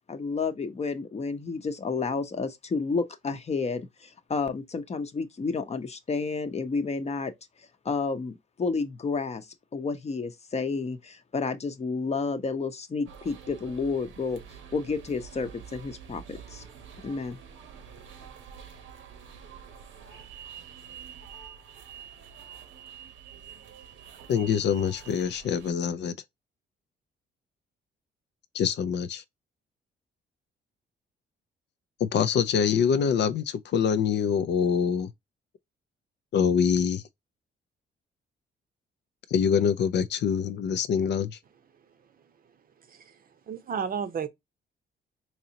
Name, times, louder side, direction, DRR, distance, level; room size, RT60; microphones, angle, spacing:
voice 1, 0.1-7.3 7.8-14.4 14.7-16.7 17.0-17.4, left 4 dB, 35° left, 0.7 m, -31 dB
sound 1, 13.1-25.7, right 8 dB, 80° right, 0.9 m, -47 dB
voice 2, 24.3-26.1 28.5-29.2 32.0-35.1 36.3-37.0 39.3-41.4, left 7 dB, 60° left, 0.4 m, -25 dB
voice 3, 42.9-43.2 43.5-44.3, right 7 dB, 45° right, 0.7 m, -32 dB
4.0 x 2.8 x 2.7 m
cardioid pair, 90°, 20 cm